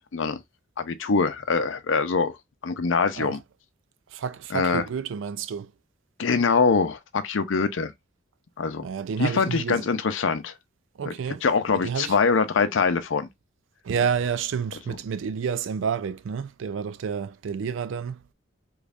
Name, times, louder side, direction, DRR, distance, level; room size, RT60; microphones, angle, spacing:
voice 1, 0.8-2.3 2.6-3.4 4.5-4.8 6.2-7.9 8.6-8.9 9.2-10.5 11.1-11.2 11.4-13.3, left 4 dB, 75° left, 0.5 m, -23 dB
voice 2, 4.1-5.7 8.8-9.9 11.0-11.4 11.7-12.1 13.8-18.2, right 6 dB, 75° right, 0.4 m, -29 dB
3.5 x 3.1 x 2.4 m
head